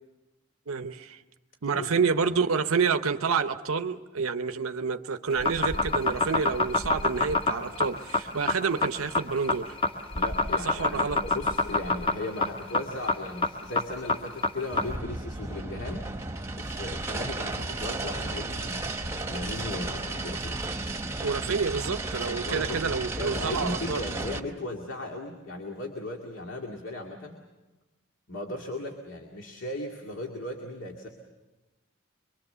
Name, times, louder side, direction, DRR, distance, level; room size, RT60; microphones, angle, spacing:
voice 1, 0.7-1.2 1.6-9.8 10.6-11.2 21.2-24.0, right 5 dB, 90° right, 0.8 m, -28 dB
voice 2, 1.7-2.4 10.1-16.1 16.6-20.6 22.4-22.8 23.1-27.4 28.3-31.1, left 2 dB, 70° left, 2.2 m, -37 dB
sound 1, 5.3-15.0, left 2 dB, 25° left, 1.2 m, -26 dB
sound 2, 14.7-24.4, right 2 dB, 15° right, 1.0 m, -34 dB
24.0 x 24.0 x 6.8 m
head